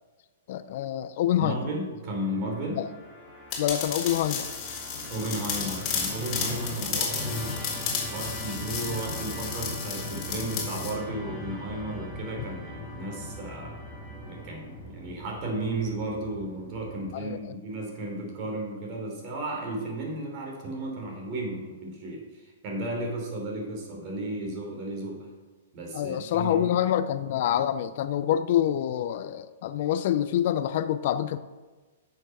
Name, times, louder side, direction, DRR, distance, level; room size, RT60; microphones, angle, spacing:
voice 1, 0.5-1.6 2.8-2.9 3.6-4.5 17.1-17.5 25.9-31.4, left 11 dB, 55° left, 13 dB, 0.5 m, -26 dB
voice 2, 1.4-2.9 5.1-13.7 14.2-25.3 25.7-26.7, right 1 dB, 40° right, 0 dB, 3.5 m, -34 dB
Musical instrument, 2.2-17.5, left 1 dB, 5° right, 2.5 m, -40 dB
sound 1, 3.5-10.9, left 6 dB, 30° left, 2.9 m, -33 dB
9.5 x 6.6 x 5.9 m, 1.2 s
hypercardioid pair, 135°, 0 cm